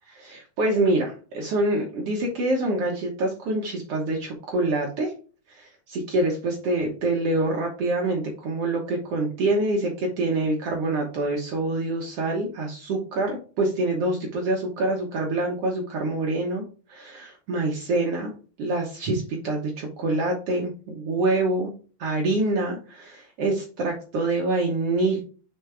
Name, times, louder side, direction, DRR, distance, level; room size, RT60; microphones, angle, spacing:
voice 1, 0.1-5.1 5.5-16.6 16.9-18.3 18.6-21.7 22.0-25.2, right 2 dB, 90° right, 0 dB, 1.3 m, -26 dB
5.8 x 5.2 x 3.4 m, 0.37 s
omnidirectional pair, 4.5 m